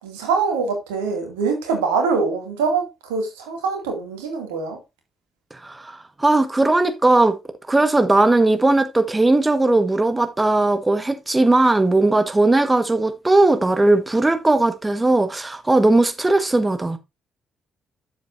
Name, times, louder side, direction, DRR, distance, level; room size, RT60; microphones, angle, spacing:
voice 1, 0.0-4.8, right 4 dB, 80° right, 2.3 m, -24 dB
voice 2, 5.5-7.4 7.7-17.0, right 2 dB, 20° right, 1.3 m, -18 dB
9.3 x 7.4 x 2.6 m
hypercardioid pair, 45°, 0 cm